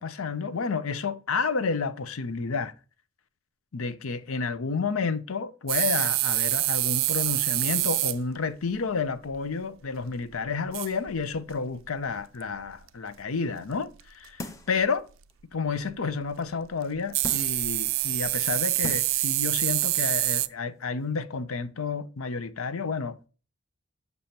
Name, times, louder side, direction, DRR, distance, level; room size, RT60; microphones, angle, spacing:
voice 1, 0.0-2.7 3.7-15.1 15.5-23.3, left 4 dB, 75° left, 0.6 m, -30 dB
sound 1, 5.7-8.2 10.3-10.4 10.7-11.2 12.4-12.5 14.0-14.1 17.1-20.5, right 18 dB, 65° right, 0.4 m, -26 dB
sound 2, 14.4-14.8 15.3-15.4 17.2-17.7 18.4-18.5 18.8-19.2 19.6-19.7, left 2 dB, 15° left, 0.6 m, -38 dB
6.9 x 6.7 x 2.8 m
head